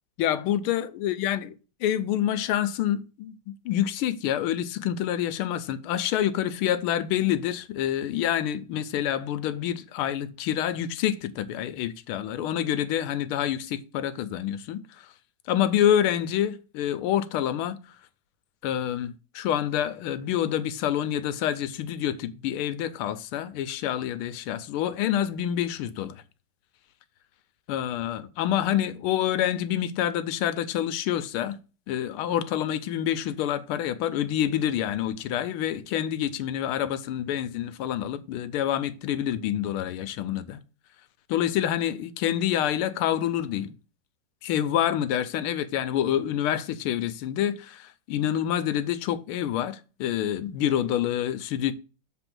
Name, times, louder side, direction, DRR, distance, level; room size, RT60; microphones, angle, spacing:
voice 1, 0.2-1.5 1.8-15.1 15.5-17.8 18.6-26.2 27.7-31.6 31.9-40.6 41.3-43.7 44.4-51.7, left 11 dB, 85° left, 1.5 m, -27 dB
6.9 x 3.9 x 6.0 m
omnidirectional pair, 2.4 m